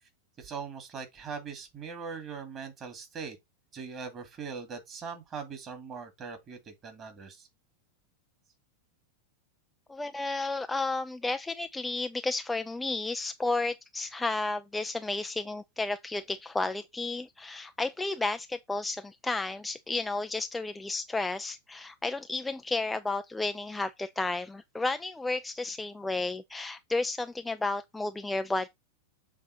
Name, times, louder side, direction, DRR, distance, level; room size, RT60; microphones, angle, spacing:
voice 1, 0.4-3.4 3.7-7.5, right 5 dB, 30° right, 2.4 m, -41 dB
voice 2, 9.9-28.7, left 2 dB, 10° left, 0.4 m, -32 dB
7.2 x 4.1 x 4.2 m
figure-of-eight pair, 90°, 0 cm